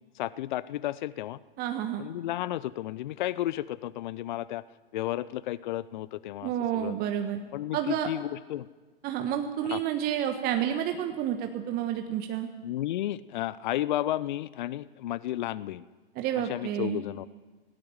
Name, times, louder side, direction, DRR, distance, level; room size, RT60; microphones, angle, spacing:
voice 1, 0.1-1.4 2.0-4.6 4.9-6.9 7.5-8.7 9.7-9.8 12.6-15.8 16.5-17.3, left 14 dB, 50° left, 19 dB, 0.6 m, -32 dB
voice 2, 1.6-2.0 6.4-7.4 7.7-8.1 9.0-12.5 16.1-17.0, right 10 dB, 30° right, 6 dB, 1.5 m, -30 dB
18.0 x 17.5 x 9.6 m, 1.3 s
figure-of-eight pair, 105°, 30 cm